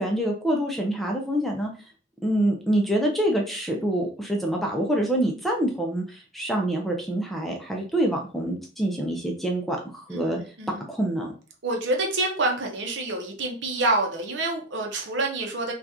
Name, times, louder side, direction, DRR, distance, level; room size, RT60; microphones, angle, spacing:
voice 1, 0.0-1.7 2.2-10.4 10.9-11.3, right 1 dB, ahead, 0 dB, 0.5 m, -26 dB
voice 2, 10.1-10.9 11.6-15.7, right 2 dB, 80° right, 2 dB, 0.8 m, -27 dB
2.8 x 2.4 x 3.5 m, 0.38 s
head